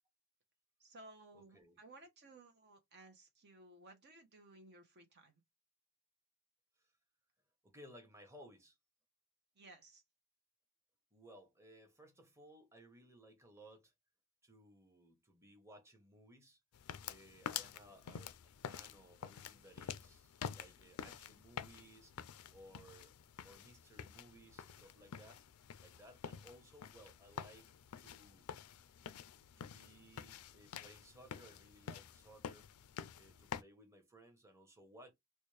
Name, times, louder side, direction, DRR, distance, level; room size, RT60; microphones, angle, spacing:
voice 1, 0.8-5.4 9.6-10.0, right 2 dB, 50° right, 0.8 m, -59 dB
voice 2, 1.3-1.8 6.8-6.9 7.6-8.8 11.1-13.9 14.4-16.6 17.0-22.1 22.5-23.1 23.4-25.4 25.8-27.7 28.0-28.4 29.6-32.7 33.1-35.1, right 1 dB, 10° right, 1.0 m, -60 dB
sound 1, 16.7-33.6, left 8 dB, 80° left, 0.4 m, -49 dB
4.2 x 2.2 x 3.2 m
head